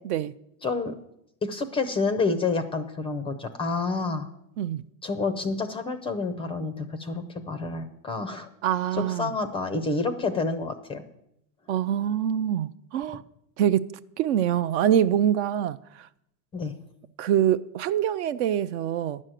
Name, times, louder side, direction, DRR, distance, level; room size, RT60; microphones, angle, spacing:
voice 1, 0.6-0.9 1.4-4.3 5.0-8.5 8.9-11.0 16.5-16.7, left 3 dB, 10° left, 0.4 m, -28 dB
voice 2, 8.6-9.3 11.7-13.2 13.6-16.1 17.2-19.2, right 10 dB, 50° right, 0.5 m, -25 dB
11.0 x 6.3 x 9.0 m
supercardioid pair, 130°, 48 cm